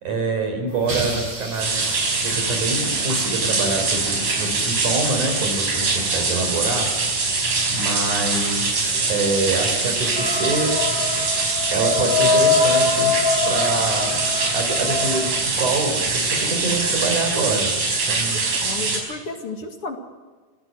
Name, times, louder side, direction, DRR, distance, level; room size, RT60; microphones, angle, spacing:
voice 1, 0.0-6.9 7.3-10.7 11.7-13.2 13.5-14.3 14.5-17.7 18.1-18.6, right 3 dB, 70° right, 5 dB, 5.9 m, -26 dB
sound 1, 0.7-16.1, right 1 dB, 50° right, 8.5 m, -39 dB
sound 2, 1.6-19.0, right 3 dB, 85° right, 6.6 m, -23 dB
sound 3, 10.2-15.3, left 4 dB, 85° left, 4.2 m, -23 dB
voice 2, 18.5-20.0, left 3 dB, 45° left, 4 dB, 2.8 m, -32 dB
27.0 x 16.5 x 6.4 m, 1.4 s
omnidirectional pair, 3.7 m